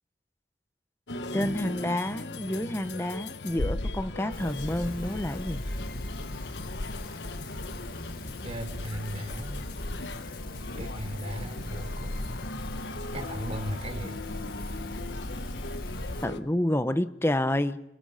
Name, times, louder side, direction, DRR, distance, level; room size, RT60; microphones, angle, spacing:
sound 1, 1.1-16.4, left 2 dB, 85° left, 1.1 m, -38 dB
voice 1, 1.3-5.6 16.2-17.8, left 1 dB, 15° left, 12 dB, 0.9 m, -29 dB
sound 2, 4.3-16.3, left 1 dB, 55° left, 2.0 m, -38 dB
voice 2, 8.4-9.7 10.7-12.3 13.1-14.2, equal, 35° right, 5 dB, 4.0 m, -37 dB
29.5 x 20.0 x 5.7 m, 0.84 s
head